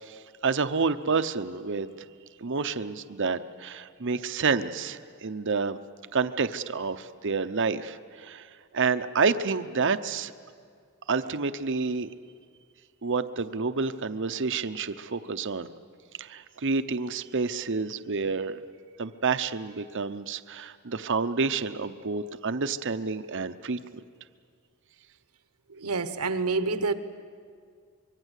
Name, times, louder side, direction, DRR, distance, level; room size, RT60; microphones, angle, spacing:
voice 1, 0.0-2.1 2.4-5.8 6.1-10.3 11.1-12.1 13.0-15.7 16.2-18.6 19.0-23.8, right 4 dB, 55° right, 11 dB, 0.8 m, -29 dB
voice 2, 25.7-26.9, right 4 dB, 85° right, 11 dB, 1.2 m, -27 dB
25.0 x 23.5 x 8.3 m, 2.1 s
head